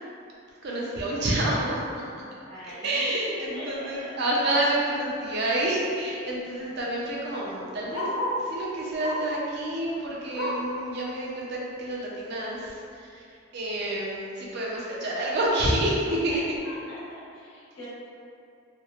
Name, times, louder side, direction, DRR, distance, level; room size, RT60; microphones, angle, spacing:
voice 1, 0.6-2.1 2.8-8.1 8.4-13.2 13.5-16.4, right 1 dB, 55° right, -4 dB, 0.5 m, -28 dB
voice 2, 2.4-3.9 16.3-16.4 16.6-17.9, left 1 dB, 85° left, -10 dB, 1.0 m, -42 dB
Bark, 4.8-5.0 5.4-5.5 5.7-8.5 9.0-9.4 9.8-10.8 11.2-11.3 11.7-11.8 12.5-12.6, left 1 dB, 65° left, 0.4 m, -34 dB
2.8 x 2.1 x 2.4 m, 2.4 s
head